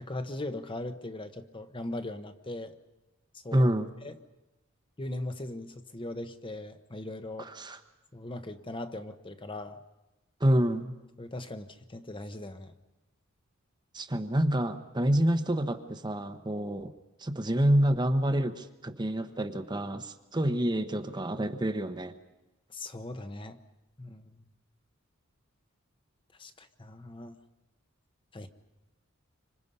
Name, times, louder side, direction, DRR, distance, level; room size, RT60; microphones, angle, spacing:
voice 1, 0.0-2.7 3.4-3.7 4.0-4.1 5.0-7.5 8.1-9.8 11.2-12.7 22.7-23.6 24.0-24.4 26.4-27.4 28.3-28.5, left 1 dB, 25° left, 8 dB, 1.0 m, -39 dB
voice 2, 3.5-3.9 7.4-7.8 10.4-10.9 13.9-16.9 17.2-22.2, right 1 dB, 20° right, 8 dB, 1.0 m, -27 dB
27.0 x 25.5 x 5.5 m, 1.1 s
head